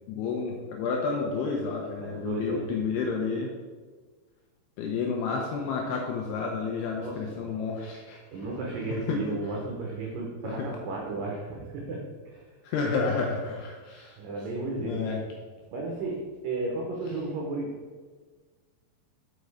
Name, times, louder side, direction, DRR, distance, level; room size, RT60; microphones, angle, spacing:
voice 1, 0.1-3.5 4.8-8.2 8.9-9.2 10.6-10.7 12.6-14.2 14.8-15.2, left 4 dB, 80° left, 0 dB, 2.4 m, -30 dB
voice 2, 2.0-2.7 7.0-7.4 8.3-12.5 14.2-15.1 15.7-17.8, right 3 dB, 80° right, -1 dB, 1.9 m, -34 dB
6.6 x 5.3 x 4.8 m, 1.4 s
omnidirectional pair, 5.3 m